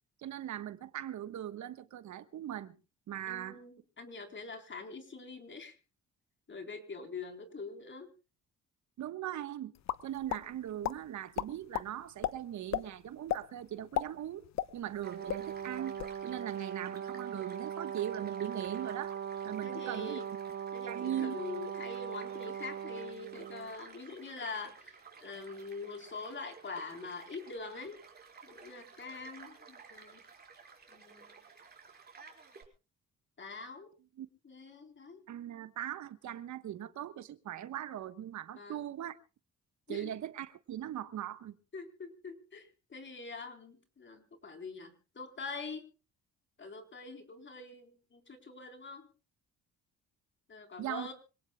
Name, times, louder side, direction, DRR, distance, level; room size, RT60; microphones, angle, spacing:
voice 1, 0.2-2.7 3.1-3.6 9.0-9.7 10.0-14.4 14.7-19.1 19.4-20.2 20.9-21.3 34.2-34.3 35.3-39.1 39.9-41.5 50.8-51.1, right 11 dB, 70° right, 1.3 m, -40 dB
voice 2, 3.3-5.8 6.5-8.1 19.6-20.3 20.7-28.0 28.4-30.2 30.9-31.3 33.4-33.9 34.4-35.2 38.6-38.8 39.9-40.1 41.7-45.9 46.6-49.1 50.5-51.1, left 4 dB, 40° left, 4.0 m, -44 dB
sound 1, 9.9-10.4 10.8-11.0 11.4-11.9 12.2-12.3 12.7-12.8 13.3-13.4 13.8-15.0 15.3-15.4 15.8-16.1, left 11 dB, 65° left, 1.0 m, -33 dB
Child speech kid speaking / Stream / Car passing by, 15.0-32.6, right 5 dB, 30° right, 4.6 m, -55 dB
Brass instrument, 15.0-23.7, right 9 dB, 50° right, 1.9 m, -40 dB
26.0 x 18.0 x 2.3 m
cardioid pair, 90°, 30 cm